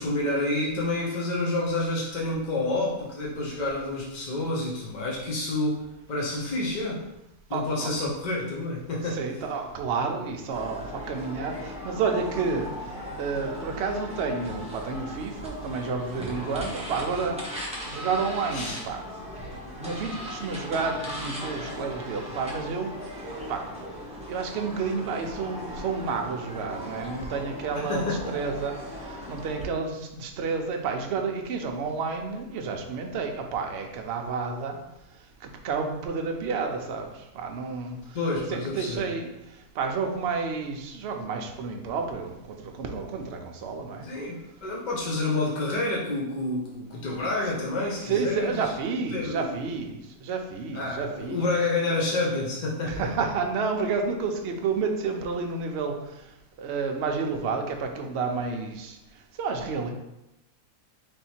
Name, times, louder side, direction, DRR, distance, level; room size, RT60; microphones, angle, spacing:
voice 1, 0.0-5.8 6.1-7.0 7.5-9.2 18.5-18.8 27.8-28.3 38.1-39.1 44.0-48.6 49.1-49.5 50.7-53.0, left 2 dB, 60° left, -3 dB, 0.4 m, -29 dB
voice 2, 7.5-8.1 9.1-12.7 13.2-17.4 17.9-19.0 19.8-22.9 23.5-28.7 29.0-34.8 35.6-38.0 38.5-39.3 39.8-44.1 48.0-51.5 52.8-56.0 56.6-59.0 59.4-59.9, right 4 dB, 65° right, 3 dB, 0.6 m, -30 dB
sound 1, 10.5-29.6, equal, 5° right, 0.5 m, -38 dB
3.5 x 2.7 x 4.2 m, 0.91 s
omnidirectional pair, 1.6 m